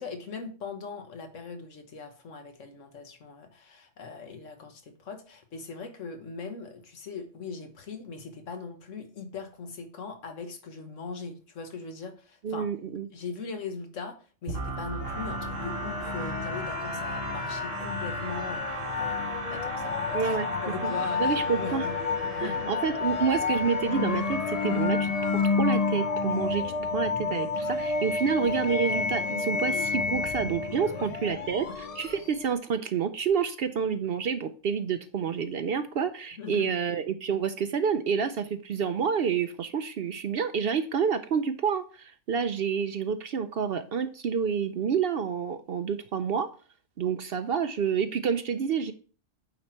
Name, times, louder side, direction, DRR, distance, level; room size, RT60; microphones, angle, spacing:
voice 1, 0.0-12.7 13.1-21.9 22.2-22.7 30.8-31.1 31.6-31.7 36.3-36.7, left 4 dB, 75° left, 6 dB, 1.5 m, -40 dB
voice 2, 12.4-13.1 20.1-20.5 20.8-20.9 21.2-21.9 22.4-46.5 47.0-48.9, right 6 dB, 60° right, 10 dB, 0.7 m, -28 dB
sound 1, 14.5-26.2, right 2 dB, 75° right, 1.4 m, -37 dB
sound 2, 15.0-32.5, left 4 dB, 55° left, 0.4 m, -30 dB
8.6 x 4.2 x 4.4 m, 0.38 s
omnidirectional pair, 1.3 m